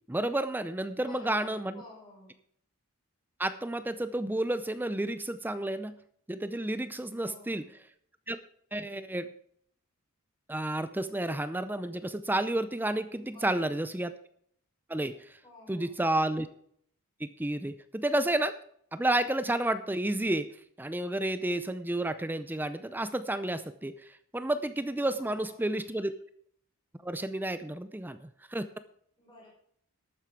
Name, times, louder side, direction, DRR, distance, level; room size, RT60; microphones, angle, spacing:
voice 1, 0.1-1.8 3.4-6.0 6.3-7.6 8.3-8.4 8.7-9.3 10.5-14.1 14.9-15.2 15.7-16.5 17.2-18.5 18.9-20.5 20.8-23.9 24.3-26.1 27.0-28.7, right 1 dB, 10° right, 12 dB, 0.5 m, -31 dB
voice 2, 1.0-2.4 7.1-7.8 13.3-13.8 15.4-16.1 25.2-26.1 29.2-29.5, left 2 dB, 25° left, -3 dB, 5.1 m, -52 dB
12.5 x 8.9 x 4.7 m, 0.64 s
head